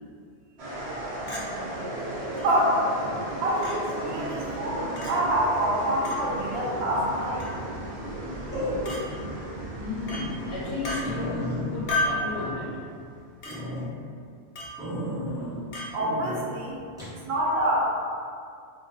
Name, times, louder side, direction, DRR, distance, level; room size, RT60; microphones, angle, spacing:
sound 1, 0.6-12.9, right 1 dB, 55° right, 0.4 m, -36 dB
Chink clink, 1.3-1.5 2.4-2.5 3.6-3.8 5.0-5.1 6.0-6.2 7.4-7.6 8.8-9.0 10.1-10.3 10.8-11.0 11.9-12.2 13.4-13.6 14.5-14.8 15.7-15.9, left 1 dB, 60° left, 0.5 m, -31 dB
voice 1, 1.9-2.8 3.4-7.4 15.9-16.8 17.2-18.0, right 1 dB, 70° right, -4 dB, 0.8 m, -26 dB
sound 2, 8.5-9.3 9.7-9.8 10.3-10.4 10.6-10.7 11.0-13.0 13.4-13.9 14.8-15.6 16.0-16.4 17.0-17.2, equal, 5° right, 0.6 m, -33 dB
voice 2, 9.8-12.8, left 3 dB, 75° left, -9 dB, 0.9 m, -34 dB
2.4 x 2.2 x 2.3 m, 2.2 s
omnidirectional pair, 1.1 m